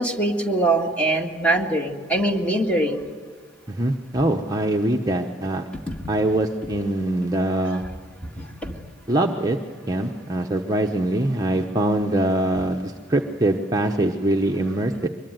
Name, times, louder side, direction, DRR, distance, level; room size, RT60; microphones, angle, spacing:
voice 1, 0.0-3.1 5.9-6.0 7.7-7.8 8.4-8.8, right 1 dB, 5° left, 3 dB, 1.9 m, -23 dB
voice 2, 3.7-5.6 6.1-7.8 9.1-9.6 9.9-15.1, right 1 dB, 20° right, 2 dB, 1.0 m, -23 dB
24.0 x 22.5 x 9.2 m, 1.5 s
head